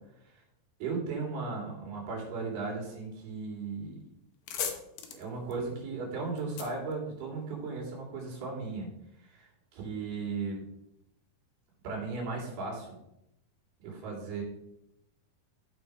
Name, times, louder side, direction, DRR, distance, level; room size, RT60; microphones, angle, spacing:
voice 1, 0.8-4.0 5.2-8.9 9.2-10.7 11.8-12.9 13.8-14.4, right 4 dB, 80° right, -1 dB, 4.7 m, -36 dB
sound 1, 3.7-3.9 4.2-7.8, left 8 dB, 70° left, 2.8 m, -40 dB
14.0 x 5.2 x 4.7 m, 0.83 s
omnidirectional pair, 4.4 m